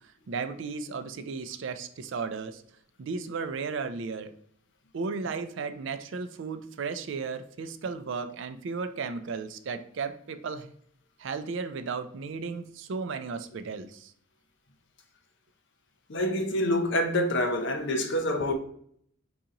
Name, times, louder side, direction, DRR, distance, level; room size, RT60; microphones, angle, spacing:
voice 1, 0.3-2.6 3.0-4.3 4.9-10.7 11.2-14.1, right 5 dB, 55° right, 0.4 m, -35 dB
voice 2, 16.1-18.5, left 1 dB, 55° left, 0.7 m, -26 dB
3.9 x 2.9 x 3.7 m
head